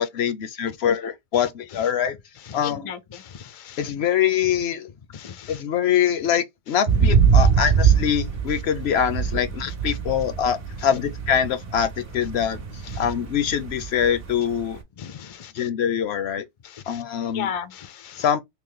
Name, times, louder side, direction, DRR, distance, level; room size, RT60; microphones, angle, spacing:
voice 1, 0.0-2.2 2.5-2.9 3.8-4.9 5.5-14.8 15.5-16.4 16.9-17.5 18.2-18.4, left 9 dB, 70° left, 0.8 m, -24 dB
voice 2, 2.6-3.2 3.7-3.8 5.2-5.6 15.0-15.5 17.3-18.2, left 8 dB, 50° left, 0.4 m, -34 dB
sound 1, 6.9-14.8, right 6 dB, 55° right, 1.0 m, -23 dB
3.0 x 2.8 x 3.8 m
omnidirectional pair, 1.2 m